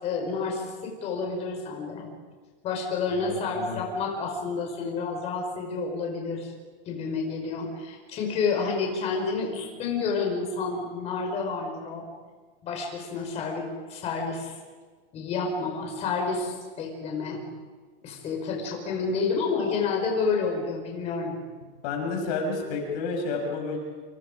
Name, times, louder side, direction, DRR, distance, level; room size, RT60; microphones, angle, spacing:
voice 1, 0.0-2.1 2.6-6.5 6.9-12.0 12.6-14.6 15.1-17.4 18.0-21.4, left 4 dB, 20° left, 1 dB, 5.0 m, -29 dB
voice 2, 3.1-3.8 21.8-23.8, left 3 dB, 45° left, 2 dB, 5.9 m, -30 dB
28.5 x 27.5 x 5.1 m, 1.4 s
supercardioid pair, 180°, 29 cm